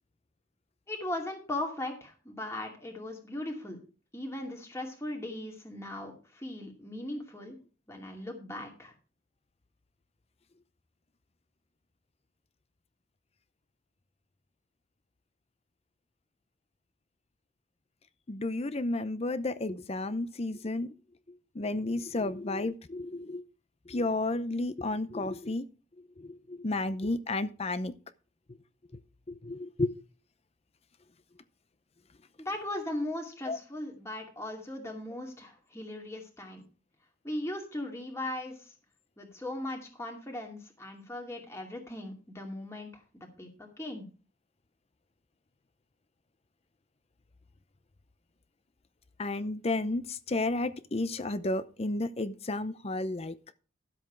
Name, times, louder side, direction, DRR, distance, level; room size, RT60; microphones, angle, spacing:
voice 1, 0.9-3.8 4.1-7.6 7.9-8.9 32.4-36.6 37.2-38.7 39.2-44.1, left 1 dB, 15° left, 2.5 m, -38 dB
voice 2, 18.3-20.9 21.6-23.4 23.9-25.7 26.2-27.9 29.3-29.9 33.5-33.6 49.2-53.3, left 2 dB, 30° left, 0.6 m, -32 dB
12.5 x 7.9 x 4.6 m
head